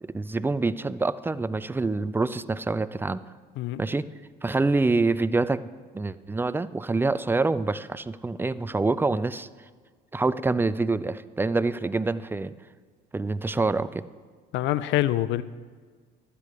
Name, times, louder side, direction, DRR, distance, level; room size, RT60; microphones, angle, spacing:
voice 1, 0.0-3.2 3.8-4.0 4.4-5.7 5.9-9.5 10.1-12.5 13.1-14.0, right 3 dB, 10° right, 15 dB, 0.4 m, -26 dB
voice 2, 14.5-15.4, left 14 dB, 70° left, 17 dB, 0.5 m, -25 dB
12.0 x 8.4 x 5.1 m, 1.6 s
hypercardioid pair, 65°, 20 cm